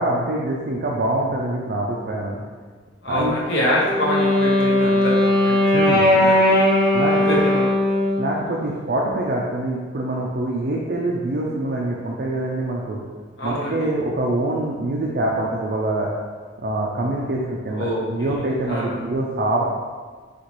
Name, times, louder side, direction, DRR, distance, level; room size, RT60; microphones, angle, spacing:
voice 1, 0.0-2.4 3.1-3.3 5.7-6.1 6.9-7.4 8.2-13.0 13.4-16.1 16.6-19.6, right 1 dB, 50° right, -3 dB, 0.4 m, -24 dB
voice 2, 3.0-6.6 7.3-7.6 13.4-13.9 17.7-19.0, left 1 dB, 60° left, -6 dB, 1.0 m, -26 dB
Wind instrument woodwind instrument, 3.8-8.4, left 1 dB, ahead, 1.2 m, -18 dB
4.2 x 2.9 x 3.0 m, 1.5 s
head